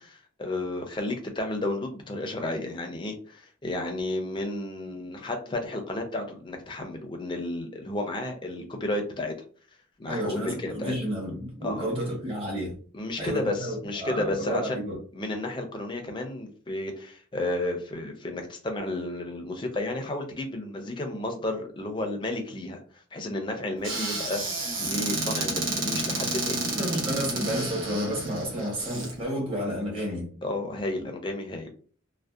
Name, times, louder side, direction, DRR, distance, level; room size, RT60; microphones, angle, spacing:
voice 1, 0.0-9.3 10.0-11.0 11.6-11.9 12.9-14.8 15.1-22.8 23.1-26.9 30.4-31.7, left 2 dB, 25° left, 0.4 m, -32 dB
voice 2, 10.1-12.8 13.2-15.0 26.8-30.3, equal, 30° right, 1.0 m, -31 dB
Squeak / Cupboard open or close, 23.8-29.1, right 2 dB, 80° right, 0.9 m, -30 dB
2.6 x 2.1 x 2.3 m
head